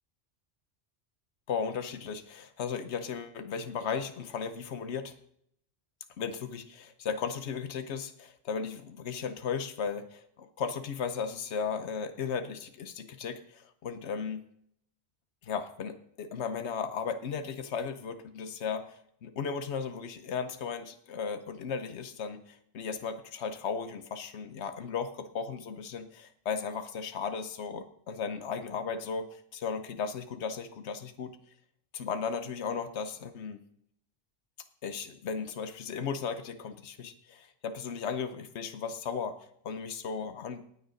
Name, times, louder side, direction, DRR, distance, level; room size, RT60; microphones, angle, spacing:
voice 1, 1.5-5.1 6.2-14.4 15.4-31.4 31.9-33.6 34.8-40.6, left 6 dB, 85° left, 9 dB, 1.1 m, -36 dB
18.5 x 6.5 x 5.1 m, 0.69 s
omnidirectional pair, 1.1 m